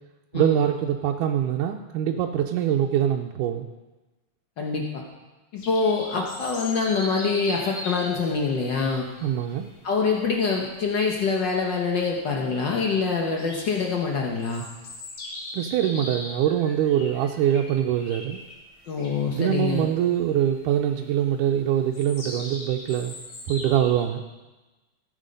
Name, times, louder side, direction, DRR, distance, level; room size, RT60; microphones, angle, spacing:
voice 1, 0.3-3.7 9.2-9.7 15.5-18.4 19.3-23.1 23.5-24.2, right 10 dB, 90° right, 2 dB, 2.1 m, -24 dB
voice 2, 4.6-5.0 5.5-9.1 9.8-14.7 18.9-19.9, left 4 dB, 85° left, 0 dB, 0.9 m, -25 dB
sound 1, 5.6-24.1, left 1 dB, 65° left, 3.5 m, -41 dB
15.5 x 8.2 x 5.2 m, 1.1 s
omnidirectional pair, 3.6 m